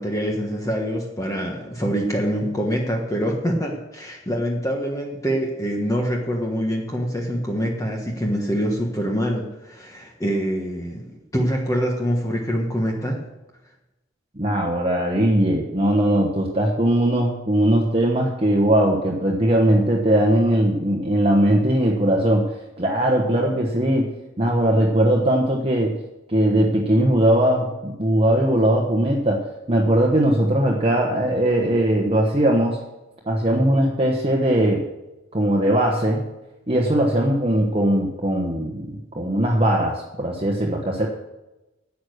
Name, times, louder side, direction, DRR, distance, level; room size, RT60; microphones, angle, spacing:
voice 1, 0.0-13.2, equal, 15° left, 0 dB, 1.3 m, -25 dB
voice 2, 14.4-26.0 26.3-32.8 33.3-34.8 35.3-36.3 36.7-41.1, right 1 dB, 30° right, -1 dB, 1.2 m, -20 dB
11.0 x 8.3 x 6.5 m, 0.99 s
head